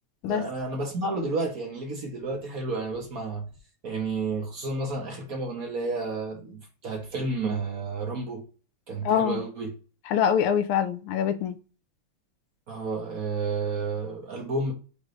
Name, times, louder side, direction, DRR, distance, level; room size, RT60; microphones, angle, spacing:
voice 1, 0.2-3.5 3.8-8.5 8.9-9.7 12.7-14.7, right 3 dB, 50° right, 1.3 m, -31 dB
voice 2, 9.0-9.4 10.1-11.6, left 8 dB, 85° left, 1.6 m, -24 dB
5.1 x 3.2 x 3.1 m
omnidirectional pair, 2.4 m